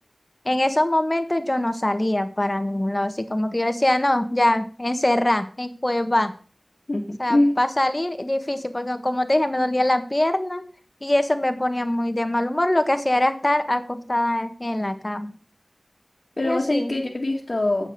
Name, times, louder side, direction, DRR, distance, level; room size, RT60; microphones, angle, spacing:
voice 1, 0.4-6.3 7.2-10.6 11.0-15.4 16.4-16.9, left 1 dB, 35° left, 8 dB, 1.5 m, -23 dB
voice 2, 6.9-7.5 16.4-17.9, left 1 dB, 65° left, -2 dB, 2.0 m, -23 dB
9.8 x 7.3 x 6.8 m, 0.40 s
wide cardioid pair, 45°, 0 cm